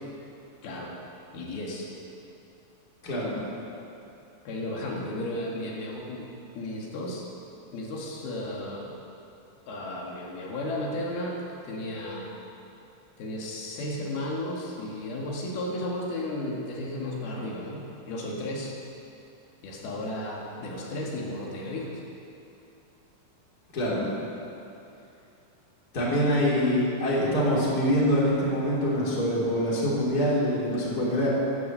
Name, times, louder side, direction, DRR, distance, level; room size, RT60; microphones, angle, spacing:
voice 1, 0.6-1.0 1.3-1.9 4.5-6.3 6.6-7.3 7.7-8.9 9.7-12.3 13.2-18.7 19.6-22.0, left 1 dB, 85° left, -3 dB, 3.9 m, -34 dB
voice 2, 3.0-3.3 23.7-24.0 25.9-31.3, equal, 25° left, -6 dB, 3.7 m, -24 dB
12.0 x 12.0 x 8.1 m, 2.8 s
omnidirectional pair, 4.3 m